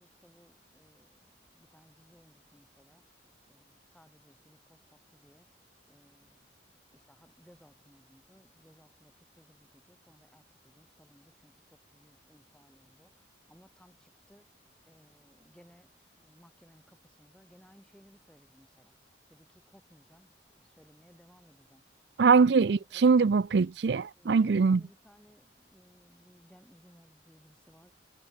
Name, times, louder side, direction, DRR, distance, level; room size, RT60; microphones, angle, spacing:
voice 1, 0.0-3.1 3.5-5.5 5.8-6.6 6.9-14.5 14.8-19.0 19.3-21.8 22.2-23.1 24.2-27.9, equal, 5° left, 6.4 m, -61 dB
voice 2, 22.2-24.8, right 5 dB, 65° right, 0.4 m, -22 dB
head